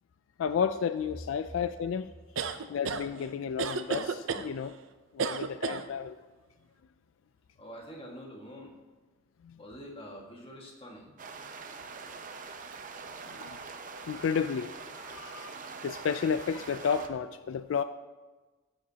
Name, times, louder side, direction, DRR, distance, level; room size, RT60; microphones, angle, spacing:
voice 1, 0.4-2.1 2.7-4.8 5.1-6.2 9.4-9.6 13.3-13.6 14.1-15.6 15.8-17.8, left 6 dB, 75° left, 0.3 m, -32 dB
sound 1, 2.4-3.0 3.6-4.5 5.2-5.8, right 5 dB, 80° right, 0.6 m, -31 dB
voice 2, 7.6-8.7 9.6-11.1, equal, 30° left, 1.7 m, -46 dB
sound 2, 11.2-17.1, right 4 dB, 45° right, 0.7 m, -44 dB
15.0 x 7.5 x 2.8 m
head